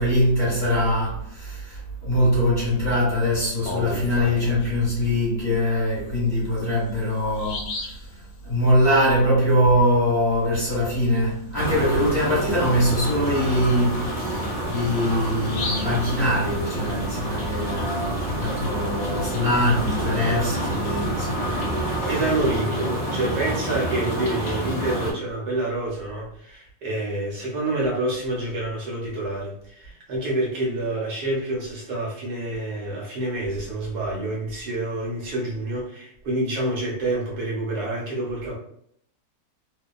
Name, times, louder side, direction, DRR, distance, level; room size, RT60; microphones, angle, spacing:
voice 1, 0.0-7.9 8.4-22.1, equal, 35° left, 1.4 m, -23 dB
Bird vocalization bird call bird song, 3.4-4.9 6.4-6.5 6.9-7.0 7.3-8.1 11.5-11.7 12.1-12.2 12.7-16.9, left 2 dB, 70° left, 1.1 m, -36 dB
sound 1, 11.5-25.1, right 1 dB, 50° left, 0.5 m, -28 dB
voice 2, 22.1-38.6, right 2 dB, 70° right, 1.2 m, -27 dB
2.9 x 2.1 x 2.2 m
omnidirectional pair, 1.8 m